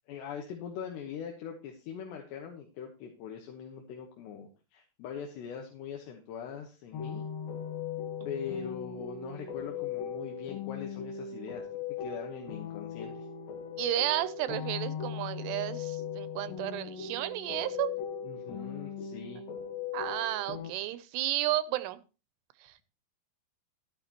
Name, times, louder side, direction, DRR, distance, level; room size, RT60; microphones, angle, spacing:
voice 1, 0.1-7.2 8.2-13.3 18.2-19.4, left 7 dB, 85° left, 2 dB, 3.4 m, -42 dB
sound 1, 6.9-20.7, left 7 dB, 65° left, 2.9 m, -38 dB
voice 2, 13.8-17.9 19.9-22.0 22.6-22.8, right 14 dB, 85° right, 14 dB, 2.8 m, -32 dB
13.0 x 11.0 x 3.0 m, 0.32 s
omnidirectional pair, 4.8 m